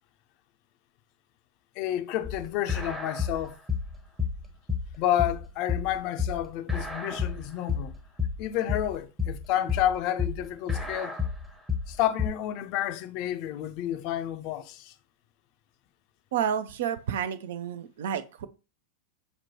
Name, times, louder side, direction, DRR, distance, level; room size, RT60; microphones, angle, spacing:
voice 1, 1.8-3.6 5.0-7.9 8.4-11.2 11.9-14.9, left 12 dB, 45° left, 0.4 m, -30 dB
sound 1, 2.2-12.3, left 6 dB, 5° right, 0.7 m, -30 dB
voice 2, 16.3-18.5, right 9 dB, 55° right, 0.4 m, -30 dB
5.9 x 2.2 x 2.9 m
figure-of-eight pair, 90°, 0 cm